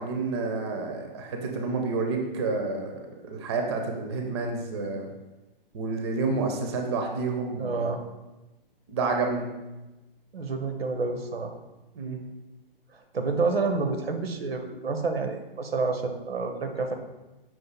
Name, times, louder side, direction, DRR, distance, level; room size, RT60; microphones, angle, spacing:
voice 1, 0.0-2.9 3.2-5.1 5.7-7.9 8.9-9.5 11.9-12.2, right 3 dB, 30° right, 3 dB, 0.4 m, -29 dB
voice 2, 7.6-8.0 10.3-11.5 12.9-16.9, right 4 dB, 80° right, 5 dB, 0.6 m, -29 dB
5.7 x 2.5 x 3.7 m, 1.1 s
figure-of-eight pair, 125°, 30 cm